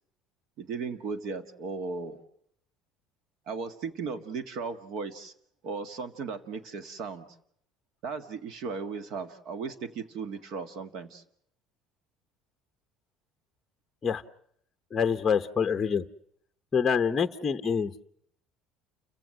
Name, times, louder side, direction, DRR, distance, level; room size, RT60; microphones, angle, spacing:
voice 1, 0.6-2.2 3.5-5.3 5.6-7.3 8.0-11.2, right 5 dB, 50° right, 11 dB, 1.6 m, -36 dB
voice 2, 14.9-16.0 16.7-17.9, left 6 dB, 15° left, 8 dB, 0.8 m, -26 dB
29.5 x 16.0 x 7.7 m, 0.68 s
cardioid pair, 175°, 0 cm